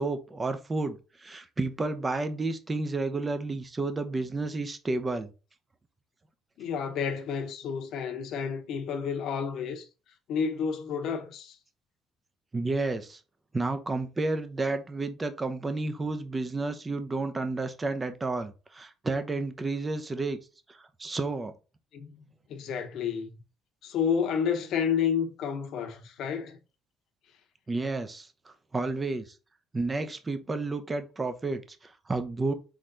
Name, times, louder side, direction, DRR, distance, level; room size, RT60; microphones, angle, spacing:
voice 1, 0.0-5.3 12.5-13.2 13.5-20.4 20.7-21.5 27.7-29.2 29.7-32.5, right 3 dB, 25° right, 0.7 m, -31 dB
voice 2, 6.6-9.9 10.3-11.6 21.9-23.4 23.8-26.6, left 7 dB, 70° left, 0.9 m, -30 dB
4.0 x 3.1 x 3.9 m
cardioid pair, 100°, 0 cm